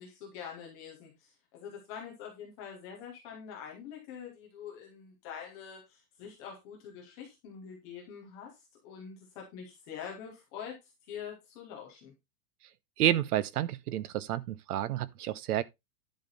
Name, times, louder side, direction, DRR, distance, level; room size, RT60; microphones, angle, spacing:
voice 1, 0.0-8.5 8.8-12.1, left 7 dB, 10° left, 0.4 m, -45 dB
voice 2, 13.0-15.6, right 12 dB, 75° right, 1.0 m, -30 dB
10.5 x 5.6 x 4.0 m
supercardioid pair, 175°, 46 cm